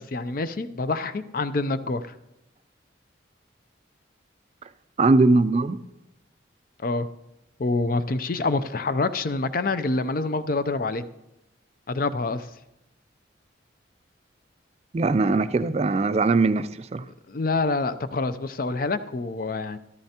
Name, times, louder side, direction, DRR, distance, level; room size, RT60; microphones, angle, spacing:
voice 1, 0.0-2.0 6.8-7.1 7.6-11.0 11.9-12.5 17.3-19.8, left 3 dB, 50° left, 0.5 m, -26 dB
voice 2, 5.0-5.8 14.9-17.0, right 3 dB, 35° right, 0.3 m, -21 dB
14.0 x 12.5 x 2.9 m
head